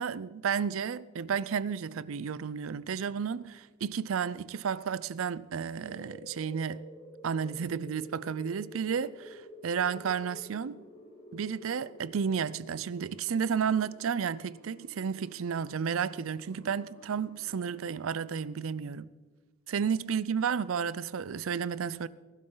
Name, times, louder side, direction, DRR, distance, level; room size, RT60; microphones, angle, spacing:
voice 1, 0.0-6.9 7.2-10.8 11.3-19.1 19.7-22.1, right 6 dB, 75° right, 0.5 m, -32 dB
sound 1, 5.8-18.5, left 1 dB, 30° left, 2.1 m, -52 dB
19.0 x 12.0 x 3.9 m
head